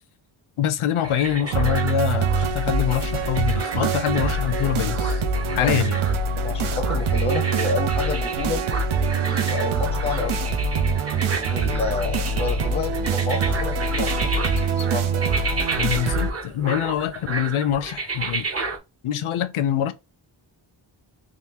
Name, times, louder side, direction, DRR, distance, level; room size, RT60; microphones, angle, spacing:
voice 1, 0.6-5.2 5.6-6.0 15.8-18.5 19.0-19.9, left 10 dB, 80° left, 0.6 m, -24 dB
sound 1, 1.0-18.8, right 3 dB, 30° right, 0.7 m, -32 dB
sound 2, 1.5-16.3, right 4 dB, 75° right, 0.6 m, -24 dB
voice 2, 5.4-5.8 6.4-8.7 9.2-10.5 11.4-15.3, left 4 dB, 15° left, 0.5 m, -30 dB
3.7 x 2.5 x 2.9 m
wide cardioid pair, 160°, 49 cm